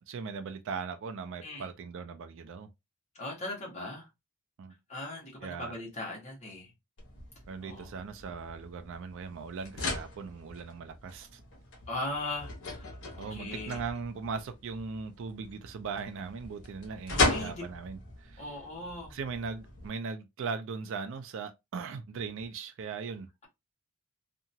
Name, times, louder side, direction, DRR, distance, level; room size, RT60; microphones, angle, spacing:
voice 1, 0.1-2.7 4.6-4.7 5.4-5.7 7.5-11.4 13.2-18.4 19.1-23.3, right 5 dB, 60° right, 0.4 m, -39 dB
voice 2, 3.1-4.1 4.9-6.7 7.6-7.9 11.9-13.8 17.1-17.7 18.4-19.1, left 2 dB, 30° left, 1.2 m, -39 dB
sound 1, 7.0-19.9, left 2 dB, 60° left, 1.1 m, -37 dB
2.8 x 2.3 x 2.7 m
head